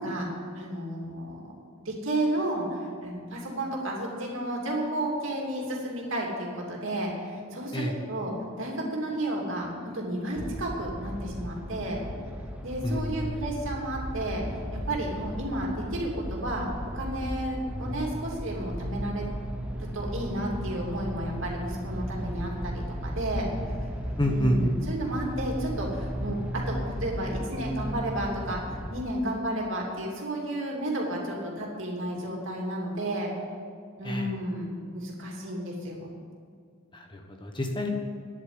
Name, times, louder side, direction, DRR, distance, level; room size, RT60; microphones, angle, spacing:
voice 1, 0.0-1.5 1.8-12.0 12.6-14.4 14.9-16.7 16.9-19.3 19.8-23.5 24.2-28.6 28.9-33.3 34.0-36.1, right 1 dB, 60° right, -1 dB, 3.0 m, -32 dB
sound 1, 10.4-29.1, equal, 5° right, 0.8 m, -35 dB
voice 2, 12.8-13.2 24.2-24.6 34.0-34.3 36.9-37.9, equal, 20° left, 3 dB, 1.2 m, -28 dB
10.5 x 8.6 x 9.6 m, 2.2 s
head